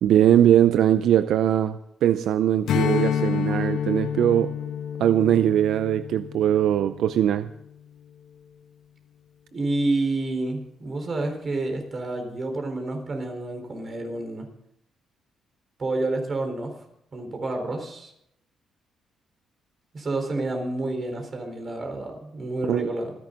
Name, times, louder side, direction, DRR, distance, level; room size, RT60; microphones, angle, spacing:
voice 1, 0.0-4.5 5.0-7.5 22.7-22.9, right 10 dB, 80° right, 0.5 m, -21 dB
Strum, 2.7-7.5, left 9 dB, 80° left, 1.0 m, -29 dB
voice 2, 9.5-14.5 15.8-16.7 17.1-18.1 19.9-23.1, right 2 dB, 35° right, 4.1 m, -29 dB
26.0 x 10.5 x 3.9 m
cardioid pair, 125°, 0 cm